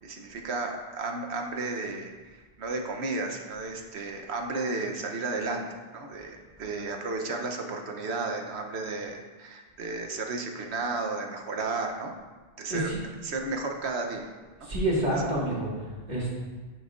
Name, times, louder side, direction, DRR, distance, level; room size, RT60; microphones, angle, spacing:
voice 1, 0.0-12.1 12.6-12.9 13.2-14.3, right 3 dB, 80° right, 3 dB, 1.1 m, -33 dB
voice 2, 14.6-15.7 16.1-16.3, right 1 dB, 40° right, -6 dB, 2.1 m, -27 dB
10.5 x 6.1 x 2.5 m, 1.3 s
omnidirectional pair, 1.1 m